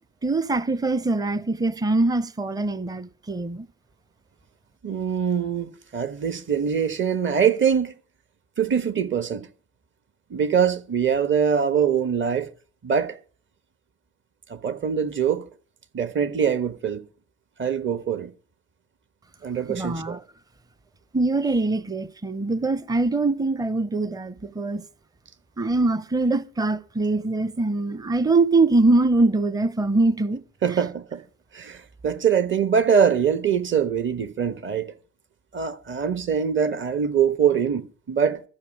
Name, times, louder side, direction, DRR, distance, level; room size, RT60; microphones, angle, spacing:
voice 1, 0.2-3.7 19.7-20.2 21.1-24.8 25.6-30.4 30.7-30.8, right 2 dB, 10° right, 0.8 m, -23 dB
voice 2, 4.8-7.9 8.6-9.5 10.3-12.5 12.8-13.2 14.5-15.5 15.9-17.0 17.6-18.3 19.4-20.2 30.6-31.2 31.5-35.0 35.5-38.4, right 7 dB, 35° right, 1.4 m, -23 dB
14.0 x 5.5 x 8.5 m
hypercardioid pair, 65°, 33 cm